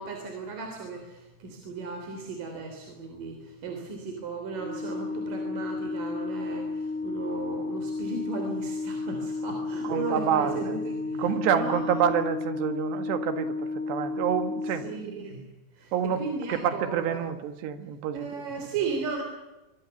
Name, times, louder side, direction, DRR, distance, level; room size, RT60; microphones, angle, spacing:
voice 1, 0.0-12.0 14.8-15.5 15.8-17.2 18.1-19.2, right 4 dB, 55° right, 3 dB, 4.9 m, -35 dB
Organ, 4.5-15.4, left 3 dB, 5° left, 0.7 m, -33 dB
voice 2, 9.8-10.8 11.2-14.9 15.9-18.7, right 8 dB, 80° right, 9 dB, 3.8 m, -28 dB
24.5 x 23.5 x 7.2 m, 1.0 s
omnidirectional pair, 4.9 m